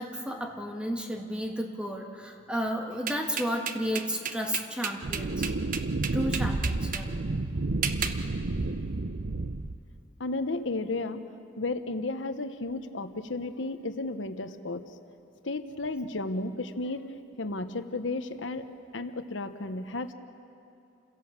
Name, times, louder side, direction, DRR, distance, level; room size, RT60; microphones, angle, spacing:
voice 1, 0.0-5.5 6.1-7.2, equal, 5° right, 2 dB, 1.7 m, -32 dB
sound 1, 3.1-7.1 7.8-8.2, right 7 dB, 45° right, 1.0 m, -32 dB
sound 2, 5.0-10.0, right 2 dB, 65° right, 0.7 m, -31 dB
voice 2, 10.2-11.2 11.6-14.8 15.4-17.1 17.4-18.7 18.9-20.1, left 2 dB, 85° left, 9 dB, 1.0 m, -33 dB
28.5 x 16.5 x 7.4 m, 2.7 s
head